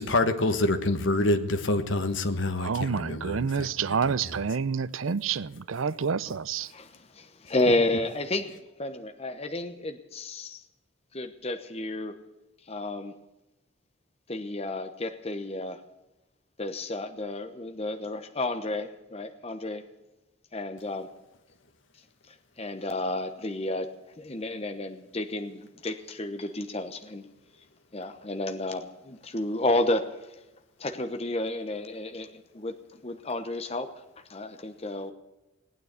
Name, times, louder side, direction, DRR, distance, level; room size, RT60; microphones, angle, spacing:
voice 1, 0.0-3.7 4.0-4.1, left 2 dB, 65° left, 1.4 m, -26 dB
voice 2, 2.6-6.7, right 6 dB, 80° right, 0.6 m, -28 dB
voice 3, 6.7-10.6 11.1-12.1 12.7-13.1 14.3-15.8 16.6-19.8 20.5-21.1 22.3-23.9 24.2-27.3 27.9-30.1 30.8-32.8 33.0-33.9 34.3-35.1, left 2 dB, 30° left, 1.0 m, -31 dB
18.5 x 9.3 x 8.2 m
head